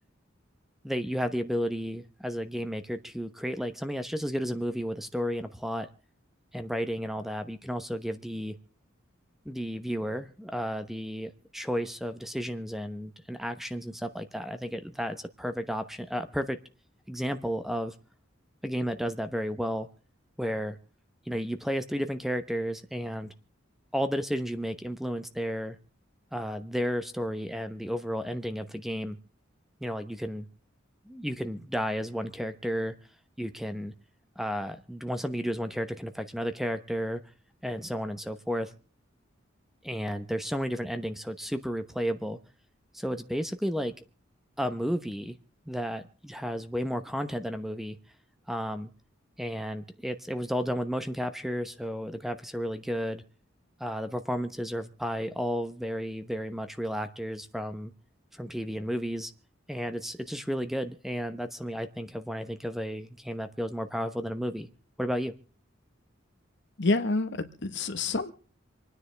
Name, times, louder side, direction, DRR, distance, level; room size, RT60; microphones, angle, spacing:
voice 1, 0.8-5.9 6.5-8.6 9.4-16.6 17.1-17.9 18.6-19.9 20.4-20.8 21.3-23.3 23.9-25.8 26.3-29.2 29.8-30.5 31.1-32.9 33.4-33.9 34.4-37.2 37.6-38.7 39.8-42.4 42.9-43.9 44.6-45.4 45.7-48.0 48.5-48.9 49.4-53.2 53.8-57.9 58.3-59.3 59.7-64.7 65.0-65.3, equal, ahead, 9 dB, 1.0 m, -32 dB
voice 2, 66.8-68.3, left 3 dB, 65° left, 11 dB, 1.3 m, -28 dB
27.0 x 9.9 x 3.4 m, 0.40 s
head